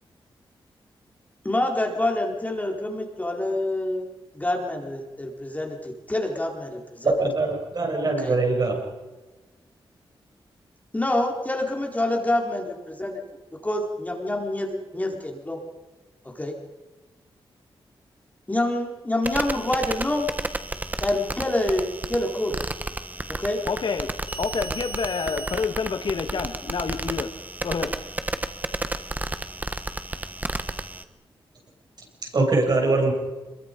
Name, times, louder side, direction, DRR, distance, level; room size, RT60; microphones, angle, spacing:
voice 1, 1.4-4.1 4.3-7.1 8.2-8.4 10.9-13.1 13.6-15.6 16.2-16.5 18.5-20.3 21.0-22.5 23.4-23.6, left 1 dB, 15° left, 1 dB, 4.1 m, -26 dB
voice 2, 7.0-8.8 32.2-33.1, right 3 dB, 50° right, 1 dB, 7.3 m, -22 dB
sound 1, 19.2-31.0, right 2 dB, 20° right, 1.4 m, -32 dB
voice 3, 23.7-24.1 24.4-27.3 27.6-27.9, left 5 dB, 60° left, 8 dB, 1.7 m, -28 dB
27.0 x 22.5 x 5.3 m, 1.2 s
cardioid pair, 90°, 9 cm